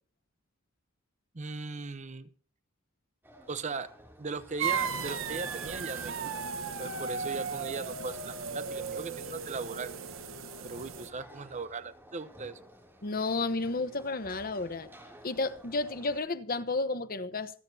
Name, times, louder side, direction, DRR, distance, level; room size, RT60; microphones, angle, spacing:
voice 1, 1.3-2.3 3.5-3.9 4.2-6.3 6.8-9.9 10.6-12.6, right 3 dB, 35° right, 0.8 m, -38 dB
sound 1, 3.2-16.2, equal, 10° right, 2.8 m, -54 dB
sound 2, 4.6-11.1, right 6 dB, 75° right, 1.2 m, -36 dB
voice 2, 13.0-14.9 15.2-17.5, left 3 dB, 45° left, 1.0 m, -32 dB
26.5 x 8.9 x 2.8 m
head